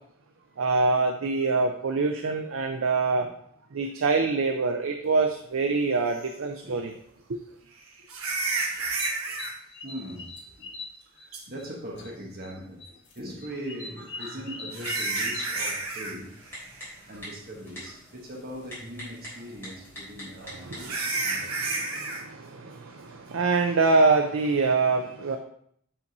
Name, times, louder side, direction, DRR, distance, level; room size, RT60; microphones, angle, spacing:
voice 1, 0.6-3.3 3.7-6.9 7.3-7.4 20.4-25.4, right 3 dB, 65° right, 0.5 m, -25 dB
voice 2, 6.1-7.0 8.5-9.3 9.8-10.3 10.6-10.7 11.0-16.4 16.9-21.8, equal, 45° right, 1.2 m, -41 dB
sound 1, 6.2-6.3 8.1-9.5 11.3-11.4 14.0-16.2 16.4-16.8 17.2-17.3 17.9-18.0 20.8-22.2, right 3 dB, 80° right, 1.3 m, -31 dB
sound 2, 8.5-11.7 12.0-12.5 12.8-15.5, left 3 dB, 55° left, 1.4 m, -41 dB
Typing, 14.8-21.0, equal, 10° left, 3.3 m, -44 dB
6.8 x 5.6 x 3.9 m
head